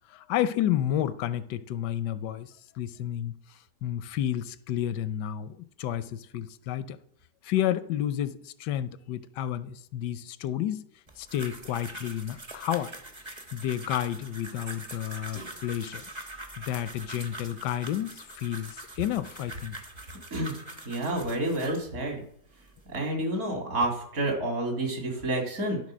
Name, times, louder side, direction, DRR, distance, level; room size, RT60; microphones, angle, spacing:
voice 1, 0.1-3.3 3.8-7.0 7.4-10.8 11.2-12.9 13.5-16.0 16.6-19.8, left 11 dB, 85° left, 1.2 m, -31 dB
sound 1, 11.1-21.9 22.5-23.0, right 1 dB, 25° right, 0.7 m, -43 dB
voice 2, 20.9-22.2 22.9-25.8, right 1 dB, 55° right, 2.5 m, -29 dB
11.5 x 3.9 x 6.1 m
omnidirectional pair, 1.8 m